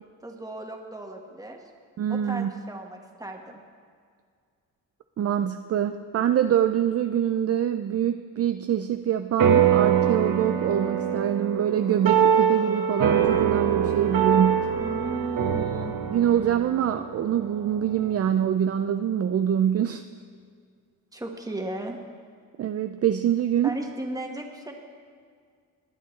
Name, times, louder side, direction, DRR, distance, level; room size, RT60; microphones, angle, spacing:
voice 1, 0.2-1.6 2.1-3.6 14.8-15.9 21.1-22.0 23.6-24.7, right 2 dB, 10° right, 2 dB, 1.4 m, -35 dB
voice 2, 2.0-2.5 5.2-14.7 16.1-20.0 22.6-23.8, right 9 dB, 45° right, 8 dB, 0.4 m, -25 dB
sound 1, 9.4-18.1, right 8 dB, 75° right, 1.2 m, -24 dB
20.0 x 9.1 x 3.2 m, 2.1 s
cardioid pair, 100°, 34 cm